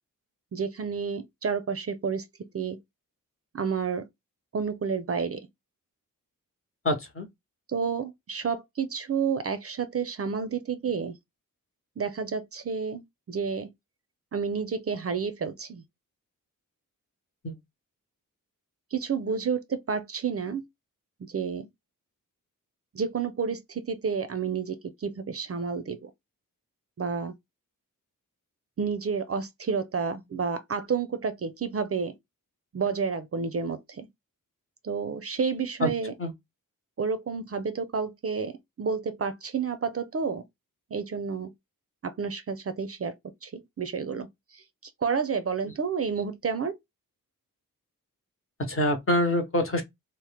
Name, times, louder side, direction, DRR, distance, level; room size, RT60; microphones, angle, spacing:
voice 1, 0.5-2.2 2.5-2.8 3.5-4.1 4.5-5.5 7.7-11.1 12.0-13.7 14.3-15.8 18.9-20.7 21.3-21.7 22.9-26.1 27.0-27.3 28.8-32.1 32.7-34.1 34.8-36.1 37.0-40.4 40.9-41.5 42.0-43.1 43.4-46.8, right 6 dB, 45° right, 0.5 m, -30 dB
voice 2, 6.8-7.3 17.4-17.6 35.8-35.9 36.2-36.3 48.6-49.8, left 1 dB, 40° left, 0.9 m, -25 dB
2.9 x 2.1 x 3.3 m
wide cardioid pair, 110°, 34 cm